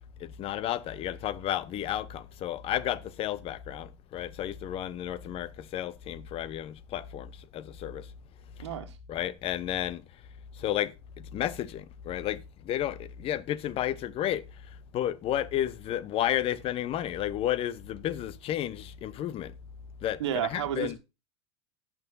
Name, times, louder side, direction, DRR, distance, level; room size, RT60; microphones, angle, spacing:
voice 1, 0.2-8.0 9.1-10.0 10.6-10.9 11.3-14.4 14.9-19.5 20.0-21.0, left 11 dB, 40° left, 0.8 m, -32 dB
voice 2, 8.6-8.9 20.2-21.0, right 10 dB, 70° right, 1.6 m, -31 dB
17.5 x 6.2 x 2.7 m
hypercardioid pair, 85°, 15 cm